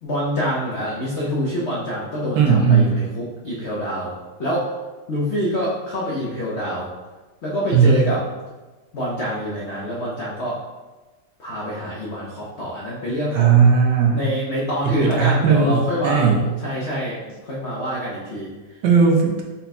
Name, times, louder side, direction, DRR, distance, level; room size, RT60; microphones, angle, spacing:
voice 1, 0.0-4.1 4.4-4.7 5.1-6.9 7.4-8.2 8.9-10.6 11.4-13.6 14.1-18.8, equal, 70° left, -5 dB, 0.6 m, -26 dB
voice 2, 2.3-2.9 7.7-8.0 13.3-14.2 14.8-16.4 18.8-19.4, right 6 dB, 70° right, 0 dB, 1.2 m, -16 dB
5.6 x 2.2 x 4.1 m, 1.2 s
omnidirectional pair, 2.1 m